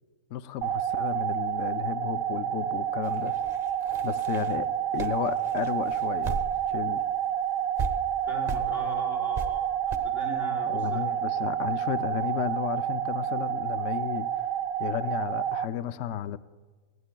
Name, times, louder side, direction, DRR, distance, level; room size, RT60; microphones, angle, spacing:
voice 1, 0.3-3.3 4.0-6.4 6.7-7.0 10.7-14.5 14.8-16.4, left 10 dB, 65° left, 0.8 m, -33 dB
sound 1, 0.6-15.6, right 10 dB, 75° right, 0.5 m, -29 dB
sound 2, 3.0-6.8 7.1-7.2 7.8-7.9 8.5-8.7 9.3-9.5 9.9-10.0, right 4 dB, 35° right, 0.9 m, -36 dB
voice 2, 8.2-11.0, left 1 dB, 40° left, 4.8 m, -40 dB
20.5 x 15.5 x 2.2 m
omnidirectional pair, 1.6 m